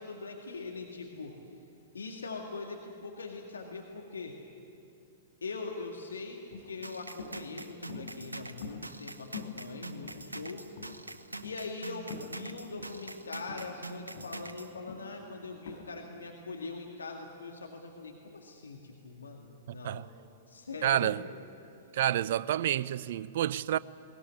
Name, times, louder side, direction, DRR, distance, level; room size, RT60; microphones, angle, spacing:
voice 1, 0.0-1.3 1.9-4.4 5.4-6.4 6.6-10.7 11.4-20.0 20.5-21.2, left 3 dB, 70° left, 2.0 m, -42 dB
sound 1, 6.5-6.7 7.2-7.4 7.9-8.2 8.6-9.1 9.3-9.6 10.0-10.5 10.7-11.0 11.4-11.6 12.1-12.3 12.8-13.0 13.5-13.7 14.1-14.4 14.9-15.1 15.7-15.8, left 6 dB, 55° left, 5.1 m, -44 dB
sound 2, 6.8-14.7, right 2 dB, 80° right, 1.1 m, -44 dB
voice 2, 19.7-20.1 20.8-21.2 21.9-23.8, right 12 dB, 50° right, 0.5 m, -29 dB
21.0 x 20.0 x 10.0 m
figure-of-eight pair, 105°, 0 cm